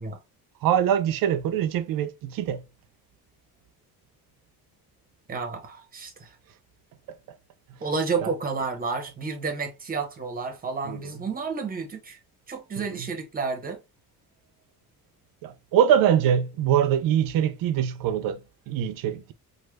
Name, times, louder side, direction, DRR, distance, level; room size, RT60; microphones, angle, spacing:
voice 1, 0.6-2.6 7.1-7.2 8.2-8.3 10.9-11.2 12.8-13.1 15.4-19.3, right 9 dB, 65° right, 0.5 m, -24 dB
voice 2, 5.3-6.3 7.8-12.2 12.5-13.8, right 4 dB, 25° right, 0.8 m, -31 dB
3.2 x 2.1 x 3.2 m
cardioid pair, 150°, 37 cm